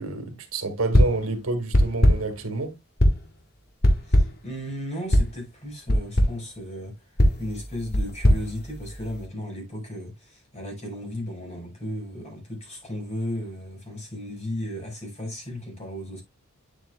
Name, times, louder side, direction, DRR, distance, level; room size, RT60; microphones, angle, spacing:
voice 1, 0.0-2.7, right 2 dB, 75° right, 1.9 m, -28 dB
sound 1, 0.9-1.3 1.7-2.4 3.0-3.4 3.8-4.5 5.1-5.4 5.9-6.4 7.2-9.2, equal, 45° left, 1.4 m, -21 dB
voice 2, 4.0-16.2, left 1 dB, 30° left, 5.1 m, -35 dB
9.0 x 7.6 x 2.3 m
head